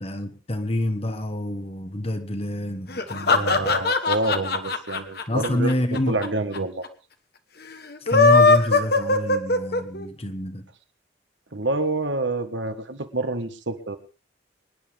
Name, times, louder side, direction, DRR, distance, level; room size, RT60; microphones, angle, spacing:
voice 1, 0.0-3.5 5.3-6.2 8.0-10.6, left 1 dB, 30° left, 1.4 m, -27 dB
sound 1, 2.9-6.3 6.5-6.6 6.8-6.9 7.9-10.0, left 3 dB, 55° left, 1.4 m, -19 dB
voice 2, 3.1-6.9 11.5-14.0, right 2 dB, 75° right, 1.7 m, -28 dB
25.0 x 10.5 x 3.6 m
head